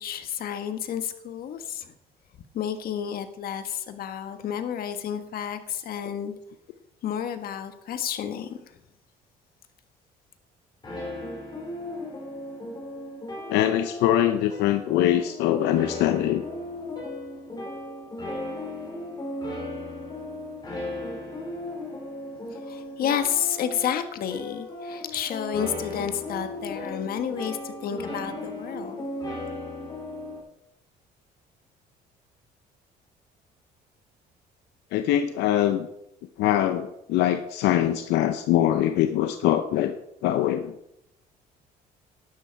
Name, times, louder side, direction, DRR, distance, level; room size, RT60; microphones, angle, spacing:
voice 1, 0.0-1.9 2.5-6.3 7.0-8.8 22.5-29.1, left 9 dB, 60° left, 1.4 m, -31 dB
sound 1, 10.8-30.4, left 1 dB, 25° left, 4.8 m, -36 dB
voice 2, 13.5-16.4 34.9-35.9 36.4-40.0 40.2-40.7, left 12 dB, 85° left, 0.7 m, -23 dB
12.0 x 11.0 x 4.6 m
cardioid pair, 110°, 17 cm